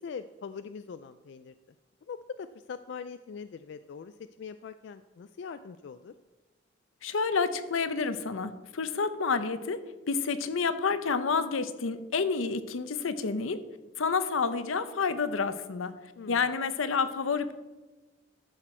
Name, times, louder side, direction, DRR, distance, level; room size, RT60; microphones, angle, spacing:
voice 1, 0.0-1.5 2.1-6.1 16.2-16.5, left 6 dB, 60° left, 11 dB, 0.3 m, -42 dB
voice 2, 7.0-13.6 14.0-15.9 16.3-17.5, left 5 dB, 85° left, 12 dB, 0.7 m, -29 dB
13.5 x 6.0 x 4.4 m, 1.2 s
head